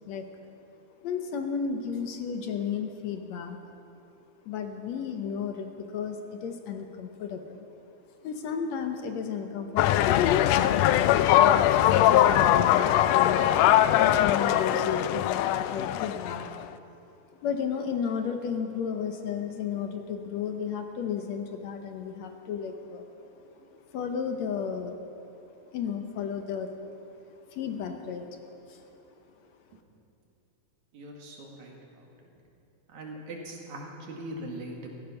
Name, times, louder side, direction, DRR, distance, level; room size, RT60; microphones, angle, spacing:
voice 1, 1.0-3.6 4.5-7.7 8.2-10.3 11.4-16.5 17.4-23.3 23.9-25.1 25.7-26.7 27.5-28.3 28.7-29.0, left 6 dB, 70° left, 5 dB, 2.0 m, -33 dB
sound 1, 9.8-16.6, left 12 dB, 85° left, 1.4 m, -21 dB
voice 2, 30.9-32.1 32.9-35.0, right 1 dB, 70° right, -1 dB, 3.4 m, -41 dB
16.0 x 15.0 x 5.7 m, 2.9 s
omnidirectional pair, 3.5 m